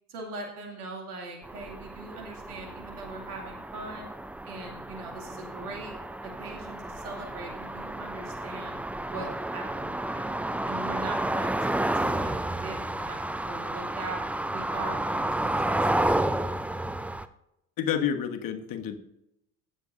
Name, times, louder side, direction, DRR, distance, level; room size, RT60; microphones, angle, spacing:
voice 1, 0.1-4.1 4.4-6.0 6.2-8.8 9.1-10.3 10.7-14.2 14.5-16.2, right 3 dB, 90° right, 2.4 m, -41 dB
sound 1, 1.4-17.3, right 1 dB, 5° right, 0.4 m, -31 dB
voice 2, 17.8-19.0, left 8 dB, 50° left, 1.4 m, -29 dB
16.0 x 7.8 x 2.5 m
hypercardioid pair, 65°, 44 cm